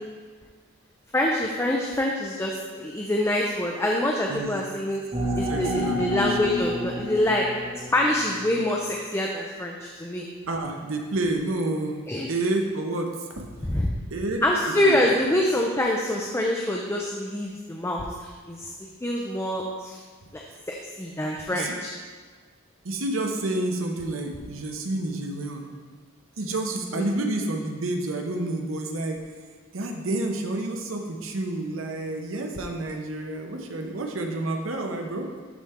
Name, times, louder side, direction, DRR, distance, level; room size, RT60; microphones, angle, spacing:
voice 1, 1.1-5.0 5.4-7.5 7.9-10.2 12.1-12.3 13.7-13.9 14.4-18.7 19.0-20.0 20.3-21.9 27.0-27.1, left 1 dB, 15° left, -1 dB, 0.5 m, -25 dB
sound 1, 5.1-8.6, equal, 25° right, 1.7 m, -30 dB
voice 2, 5.5-6.4 10.5-13.5 14.1-14.4 14.8-15.0 21.5-21.8 22.8-25.7 26.4-29.2 29.7-35.3, right 2 dB, 85° right, 3 dB, 0.9 m, -29 dB
12.0 x 4.3 x 3.6 m, 1.5 s
head